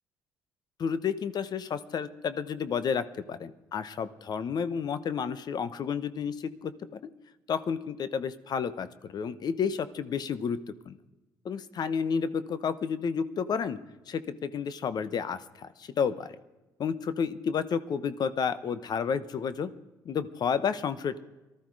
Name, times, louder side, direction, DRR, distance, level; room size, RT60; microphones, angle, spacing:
voice 1, 0.8-6.7 7.5-10.6 10.8-11.0 11.4-13.8 14.1-16.4 16.8-19.7 20.0-21.2, left 6 dB, 55° left, 14 dB, 1.0 m, -31 dB
19.0 x 13.0 x 4.8 m, 1.0 s
supercardioid pair, 65°, 9 cm